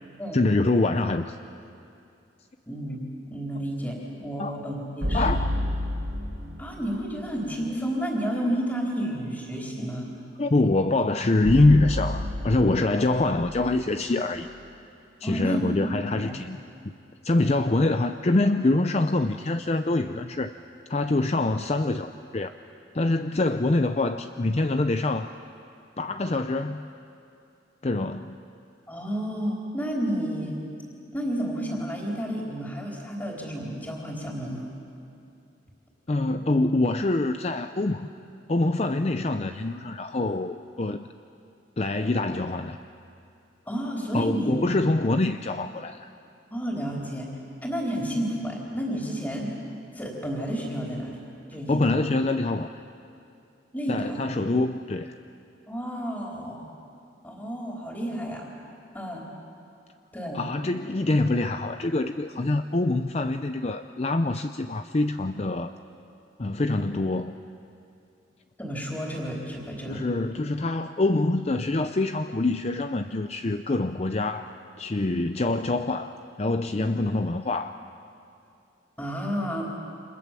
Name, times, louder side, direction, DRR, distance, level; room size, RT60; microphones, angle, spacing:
voice 1, 0.3-1.4 4.4-4.6 5.1-5.5 10.4-14.5 15.2-16.6 17.2-20.5 20.9-22.5 22.9-25.3 26.0-26.9 27.8-28.4 36.1-38.1 38.5-41.1 41.8-42.8 44.1-46.1 51.7-52.7 53.9-55.1 60.3-65.7 66.4-67.4 69.9-77.8, left 2 dB, 35° left, 8 dB, 0.6 m, -25 dB
voice 2, 2.7-5.4 6.6-10.1 15.2-15.8 16.1-16.2 28.9-30.6 31.1-34.7 43.7-44.5 46.5-47.3 47.6-49.6 49.9-51.2 51.5-52.1 53.7-54.3 55.7-56.7 57.2-58.5 58.9-59.2 60.1-60.4 68.6-70.0 79.0-79.6, equal, 15° left, -2 dB, 4.1 m, -31 dB
sound 1, 5.0-7.2 11.4-14.7, equal, 85° right, 4.3 m, -30 dB
29.0 x 26.5 x 7.6 m, 2.6 s
head